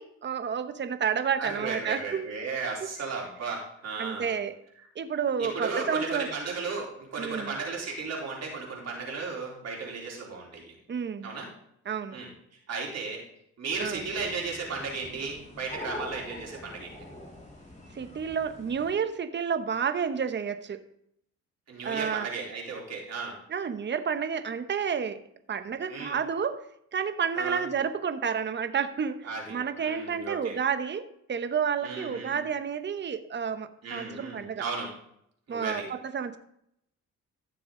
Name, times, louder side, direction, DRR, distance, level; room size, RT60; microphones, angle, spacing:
voice 1, 0.0-2.3 2.8-2.9 4.0-4.5 4.9-6.3 7.2-7.6 10.9-11.3 11.9-12.2 13.8-14.0 17.9-20.8 21.8-22.3 23.5-25.2 25.5-26.7 26.9-34.7 35.5-36.4, right 7 dB, 35° right, 10 dB, 1.0 m, -30 dB
voice 2, 1.4-4.3 5.4-10.8 11.2-11.5 12.1-12.3 12.7-13.2 13.6-17.0 21.7-23.4 25.9-26.2 27.3-27.6 29.2-30.6 31.8-32.4 33.8-34.9 35.5-35.9, right 4 dB, 55° right, -2 dB, 3.6 m, -35 dB
sound 1, 13.7-18.9, left 2 dB, 25° left, 2.9 m, -44 dB
14.5 x 6.8 x 3.8 m, 0.73 s
cardioid pair, 90°, 30 cm